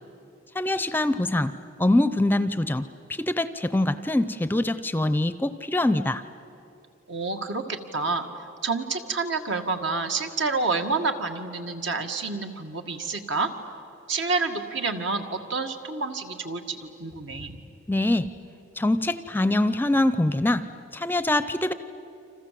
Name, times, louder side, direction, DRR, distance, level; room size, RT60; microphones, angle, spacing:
voice 1, 0.5-1.5 1.8-6.2 17.9-18.3 18.8-20.6 20.9-21.7, left 1 dB, 10° left, 12 dB, 0.5 m, -24 dB
voice 2, 7.1-8.3 8.6-13.5 14.1-17.6, right 4 dB, 70° right, 5 dB, 2.0 m, -28 dB
29.5 x 26.5 x 7.6 m, 2.8 s
head